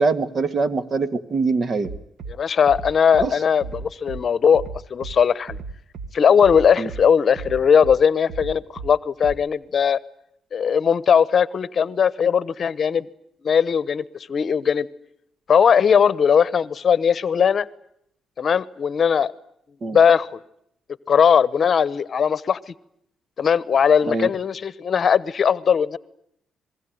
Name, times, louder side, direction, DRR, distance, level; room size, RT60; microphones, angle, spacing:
voice 1, 0.0-1.9 3.2-3.3 6.8-6.9 19.8-20.0 24.1-24.3, right 4 dB, 45° right, 12 dB, 1.9 m, -23 dB
Bass drum, 1.8-2.3 2.7-3.3 3.6-4.2 4.5-5.1 5.5-6.1 6.4-7.0 7.3-8.0 8.3-8.9 9.2-9.3, right 4 dB, 65° right, 2.2 m, -34 dB
voice 2, 2.3-4.6 4.9-5.6 6.1-10.0 10.5-13.1 13.4-14.9 15.5-17.7 18.4-19.3 19.9-20.4 21.1-22.7 23.4-26.0, left 7 dB, 45° left, 18 dB, 1.0 m, -19 dB
26.0 x 22.0 x 9.3 m, 0.75 s
cardioid pair, 90°, 0 cm